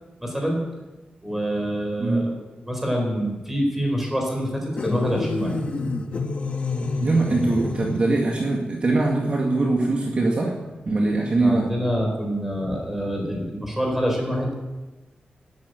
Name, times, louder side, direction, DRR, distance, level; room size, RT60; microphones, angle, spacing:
voice 1, 0.2-0.7 1.2-2.3 2.7-5.6 11.4-14.5, equal, 10° right, 0 dB, 4.3 m, -26 dB
voice 2, 2.0-2.3 7.0-10.6 10.9-11.7, right 2 dB, 40° right, 0 dB, 1.9 m, -22 dB
sound 1, 4.8-8.3, left 3 dB, 40° left, 1.6 m, -28 dB
12.5 x 10.5 x 9.1 m, 1.1 s
wide cardioid pair, 175°, 3 cm